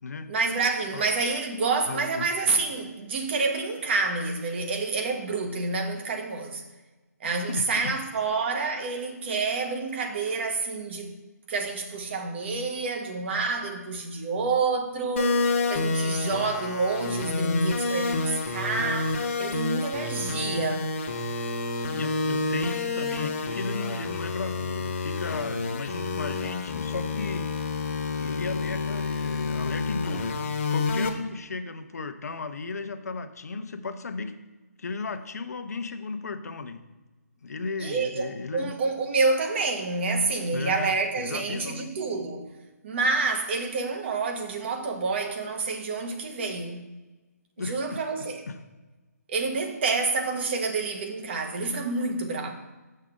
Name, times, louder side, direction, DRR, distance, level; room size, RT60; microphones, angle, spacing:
voice 1, 0.3-6.6 7.2-11.1 11.5-15.4 15.7-20.9 37.8-42.5 42.8-46.9 47.6-48.4 49.3-52.5, right 3 dB, 40° right, 1.0 m, -28 dB
voice 2, 1.9-2.3 7.2-7.9 21.9-27.5 28.2-34.4 34.8-36.8 37.4-38.7 40.5-41.9 47.6-48.0 48.5-48.6, left 4 dB, 70° left, 0.7 m, -35 dB
sound 1, 15.2-31.1, left 3 dB, 45° left, 1.0 m, -29 dB
6.6 x 6.4 x 3.7 m
hypercardioid pair, 150°, 9 cm